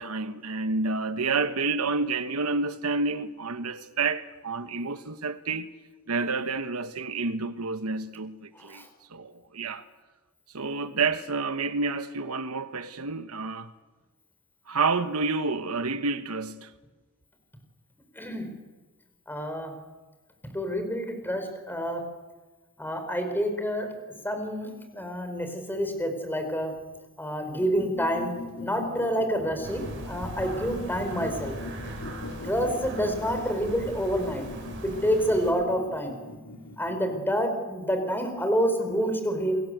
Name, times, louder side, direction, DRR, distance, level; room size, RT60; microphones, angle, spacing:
voice 1, 0.0-5.7 6.1-8.8 9.1-9.8 10.5-13.7 14.7-16.7, right 4 dB, 75° right, 1.2 m, -29 dB
voice 2, 8.5-8.9 18.1-18.5 19.3-19.7 20.5-22.0 22.8-23.9 24.2-26.7 27.2-31.5 32.4-34.4 34.8-36.2 36.8-39.6, equal, 10° left, 5.0 m, -28 dB
sound 1, 27.5-37.3, left 2 dB, 80° left, 3.6 m, -42 dB
sound 2, 29.6-35.5, right 1 dB, 60° right, 7.1 m, -40 dB
28.5 x 21.5 x 8.1 m
head